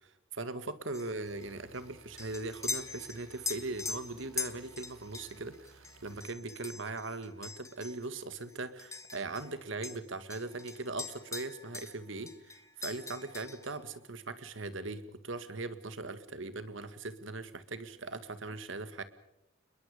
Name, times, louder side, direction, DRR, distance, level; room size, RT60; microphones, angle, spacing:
voice 1, 0.3-19.0, right 3 dB, 65° right, 11 dB, 1.9 m, -40 dB
sound 1, 0.9-9.6 9.8-12.0 12.3-13.8, left 4 dB, 15° left, 1.5 m, -43 dB
sound 2, 1.2-6.2, right 3 dB, 80° right, 3.9 m, -59 dB
28.5 x 22.0 x 5.1 m, 0.90 s
head